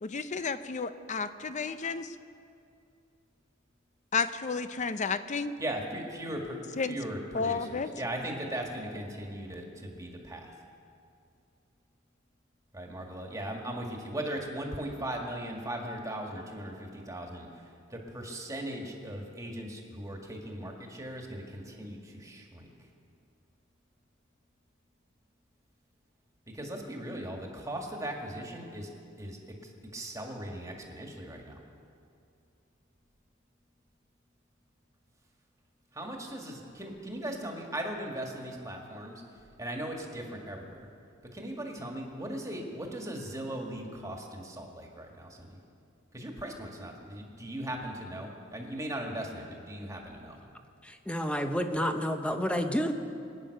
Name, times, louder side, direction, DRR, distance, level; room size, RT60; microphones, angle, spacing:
voice 1, 0.0-2.2 4.1-5.5 6.8-7.0 7.3-7.9, left 5 dB, 40° left, 12 dB, 0.6 m, -32 dB
voice 2, 5.6-6.6 6.9-10.5 12.7-17.6 17.9-22.7 26.5-28.9 29.2-31.6 35.9-39.2 39.6-40.9 41.2-45.6 46.1-50.4, right 1 dB, 15° right, 1 dB, 1.9 m, -38 dB
voice 3, 50.8-52.9, equal, 5° left, 6 dB, 0.9 m, -30 dB
23.0 x 9.3 x 6.6 m, 2.5 s
head